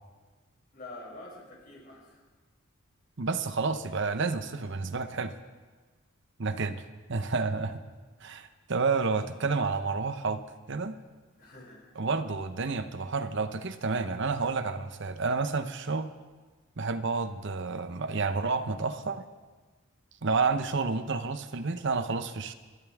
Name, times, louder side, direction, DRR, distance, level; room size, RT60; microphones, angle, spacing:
voice 1, 0.7-2.2 8.4-8.6 11.4-11.9, left 2 dB, 45° left, -5 dB, 6.9 m, -47 dB
voice 2, 3.2-5.3 6.4-6.8 7.1-7.8 8.2-10.4 10.7-10.9 12.0-16.1 16.8-19.2 20.2-22.5, right 4 dB, 60° right, 10 dB, 0.9 m, -30 dB
29.0 x 12.5 x 3.6 m, 1.3 s
head